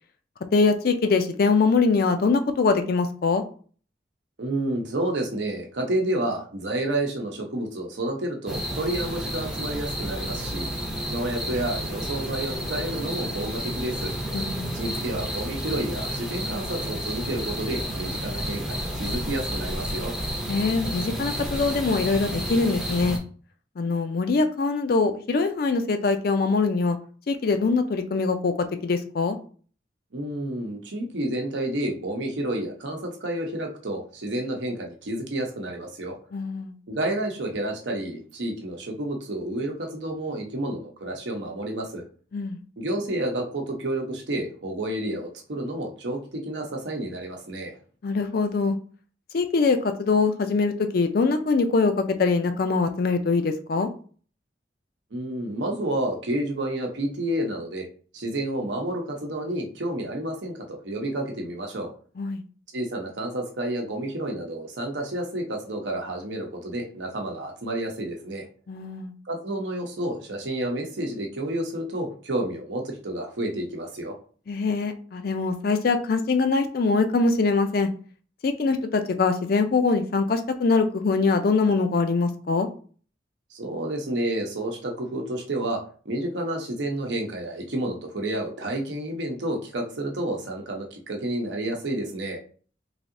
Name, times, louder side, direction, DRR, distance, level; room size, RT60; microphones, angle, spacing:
voice 1, 0.5-3.4 14.3-14.7 20.5-23.2 23.8-27.0 27.3-28.5 28.8-29.4 36.3-36.7 42.3-42.6 48.0-48.8 49.3-53.9 62.2-62.4 68.7-69.1 74.5-77.9 78.4-82.7, left 4 dB, 55° left, 8 dB, 0.4 m, -23 dB
voice 2, 4.4-10.7 11.1-14.1 14.7-20.1 30.1-36.2 36.9-42.0 42.8-47.8 55.1-57.9 58.1-61.9 62.7-68.5 69.3-74.2 83.5-92.4, right 1 dB, 75° right, 2 dB, 0.8 m, -30 dB
sound 1, 8.5-23.2, equal, 5° right, 0.5 m, -31 dB
3.3 x 2.7 x 2.6 m, 0.42 s
head